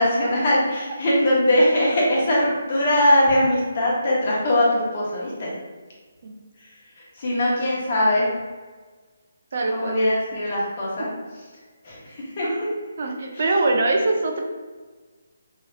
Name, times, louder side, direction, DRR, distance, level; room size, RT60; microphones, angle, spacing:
voice 1, 0.0-5.5 7.2-8.3 9.7-11.1 11.8-12.5, left 1 dB, 45° left, -5 dB, 1.1 m, -21 dB
voice 2, 9.5-10.0 12.4-12.6 13.0-14.4, right 2 dB, 55° right, 2 dB, 0.5 m, -23 dB
3.1 x 2.8 x 2.3 m, 1.4 s
figure-of-eight pair, 145°, 0 cm